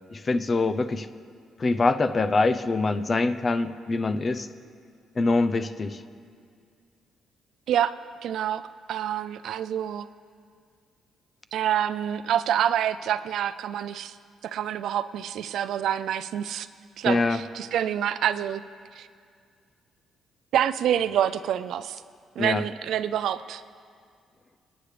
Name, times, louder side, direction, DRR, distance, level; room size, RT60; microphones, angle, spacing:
voice 1, 0.1-1.1 1.6-4.5 5.2-6.0 17.0-17.4 22.4-22.6, left 3 dB, 35° left, 12 dB, 0.6 m, -24 dB
voice 2, 8.2-8.6 8.9-10.1 11.5-14.2 14.4-16.7 17.0-18.6 18.9-19.1 20.5-22.0 22.4-23.6, right 10 dB, 75° right, 14 dB, 0.4 m, -27 dB
25.0 x 9.6 x 3.3 m, 2.2 s
cardioid pair, 90°, 0 cm